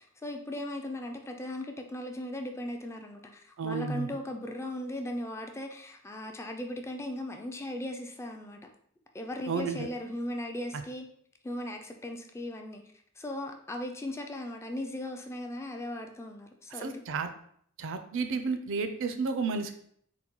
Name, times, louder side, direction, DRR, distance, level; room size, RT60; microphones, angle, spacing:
voice 1, 0.0-8.7 9.1-11.1 11.4-12.8 13.2-17.0, left 1 dB, 10° left, 4 dB, 0.3 m, -38 dB
voice 2, 3.6-4.2 9.5-9.9 10.7-10.8 16.7-17.3 17.8-19.8, right 4 dB, 60° right, 8 dB, 0.4 m, -32 dB
3.8 x 2.2 x 4.4 m, 0.64 s
head